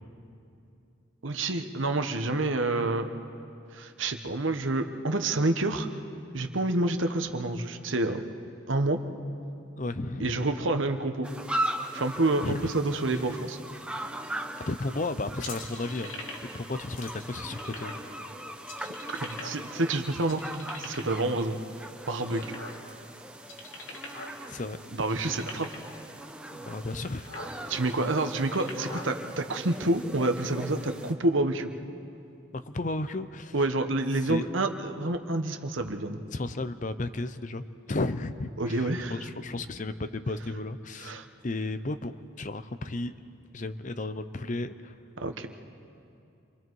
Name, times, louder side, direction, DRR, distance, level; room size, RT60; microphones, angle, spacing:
voice 1, 1.2-3.1 3.7-5.9 6.3-8.2 8.7-9.0 10.2-11.3 11.9-13.6 19.1-20.4 20.8-21.6 22.1-22.6 24.9-25.8 27.7-31.7 33.5-36.2 38.6-39.1 41.0-41.3 45.2-45.5, right 2 dB, 70° right, 7 dB, 1.2 m, -28 dB
voice 2, 9.8-10.5 12.4-12.7 13.1-13.2 14.7-16.2 16.5-18.0 22.3-22.4 24.5-24.8 26.5-27.3 27.5-27.7 32.5-33.5 34.3-34.5 35.8-35.9 36.3-43.1 43.5-44.9, left 2 dB, 40° left, 11 dB, 0.6 m, -34 dB
sound 1, 11.2-31.1, right 1 dB, 5° right, 0.8 m, -39 dB
sound 2, 15.4-16.6 17.0-18.0 18.6-19.8 20.2-21.2 21.8-23.0 23.4-24.4 24.6-24.7 25.0-25.9 26.6-26.7 27.0-27.5 28.2-29.1, left 3 dB, 70° left, 2.8 m, -42 dB
29.5 x 24.5 x 4.7 m, 2.6 s
head